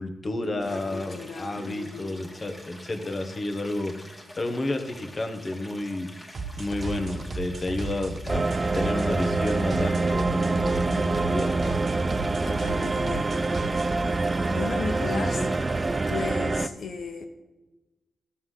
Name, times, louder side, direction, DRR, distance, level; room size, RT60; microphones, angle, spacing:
voice 1, 0.0-6.3 6.6-11.8 15.0-15.5, left 2 dB, 35° left, 6 dB, 1.1 m, -31 dB
voice 2, 0.6-2.2 12.4-13.9 14.5-15.5 16.1-17.3, left 4 dB, 75° left, 5 dB, 0.8 m, -35 dB
Stream, 0.6-16.3, equal, 15° left, 1.8 m, -47 dB
sound 1, 6.3-14.0, right 3 dB, 55° right, 0.9 m, -35 dB
sound 2, 8.3-16.7, right 3 dB, 30° right, 0.4 m, -26 dB
13.0 x 6.4 x 3.8 m, 1.1 s
cardioid pair, 90°, 0 cm